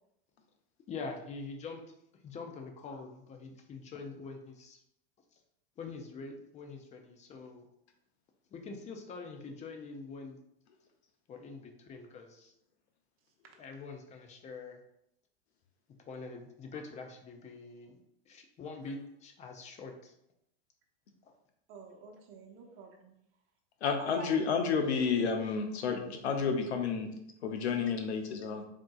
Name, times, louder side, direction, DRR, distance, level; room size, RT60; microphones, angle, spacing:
voice 1, 0.9-1.8 2.2-4.8 5.8-7.7 8.5-10.4 11.3-12.5 13.6-14.8 16.0-18.0 18.3-20.1, left 4 dB, 20° left, 4 dB, 0.4 m, -44 dB
voice 2, 21.7-23.1 24.0-24.6, right 4 dB, 40° right, 0 dB, 0.8 m, -48 dB
voice 3, 23.8-27.1 27.4-28.6, left 5 dB, 85° left, 5 dB, 0.7 m, -30 dB
3.6 x 2.7 x 2.3 m, 0.78 s
hypercardioid pair, 110°, 32 cm